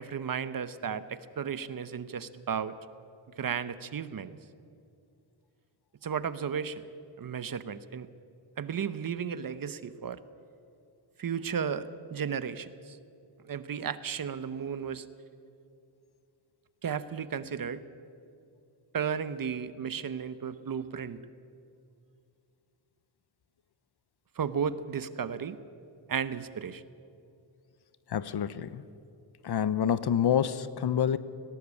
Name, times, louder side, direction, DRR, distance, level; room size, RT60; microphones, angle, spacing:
voice 1, 0.0-2.7 3.4-4.4 6.0-6.8 7.2-8.1 8.6-10.2 11.2-13.0 13.5-15.0 16.8-17.8 18.9-21.2 24.4-25.6 26.1-26.8, right 7 dB, 45° right, 14 dB, 0.8 m, -34 dB
voice 2, 28.1-28.8 29.4-31.2, left 9 dB, 55° left, 16 dB, 0.8 m, -27 dB
18.5 x 17.5 x 8.3 m, 2.5 s
wide cardioid pair, 120°, 47 cm